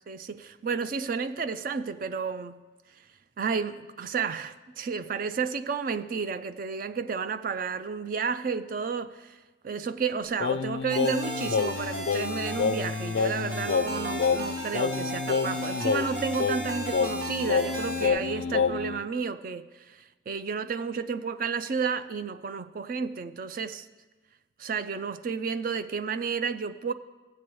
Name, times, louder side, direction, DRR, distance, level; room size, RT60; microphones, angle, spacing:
voice 1, 0.1-2.6 3.4-9.4 9.6-23.9 24.6-26.9, right 5 dB, 45° right, 0.3 m, -32 dB
Singing, 10.4-19.0, left 5 dB, 60° left, 0.3 m, -28 dB
sound 1, 10.9-18.1, right 1 dB, 85° right, 1.8 m, -36 dB
15.5 x 7.6 x 3.1 m
head